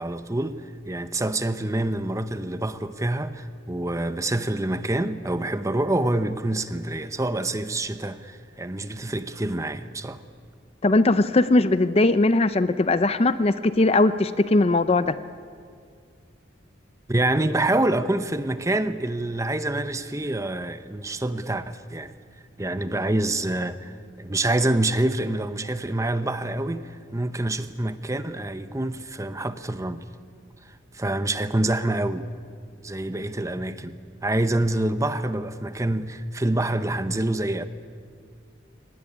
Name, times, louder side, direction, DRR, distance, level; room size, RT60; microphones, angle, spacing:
voice 1, 0.0-10.2 17.1-22.1 22.6-30.0 30.9-32.3 32.8-37.6, right 1 dB, 15° right, 0.8 m, -26 dB
voice 2, 10.8-15.2, left 2 dB, 30° left, 0.5 m, -20 dB
23.0 x 19.0 x 10.0 m
head